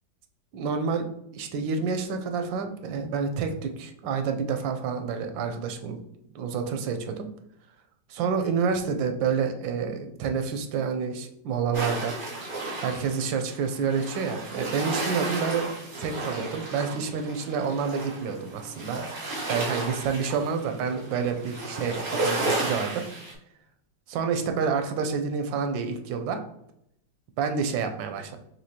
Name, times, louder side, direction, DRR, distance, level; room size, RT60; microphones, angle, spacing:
voice 1, 0.5-1.1 1.3-6.0 6.3-7.3 8.1-12.1 12.8-15.7 16.0-19.0 19.5-23.0 24.1-26.4 27.4-28.4, right 6 dB, 90° right, 6 dB, 1.4 m, -28 dB
sound 1, 11.7-23.3, right 2 dB, 35° right, 0.9 m, -33 dB
6.0 x 2.7 x 2.8 m, 0.76 s
omnidirectional pair, 2.0 m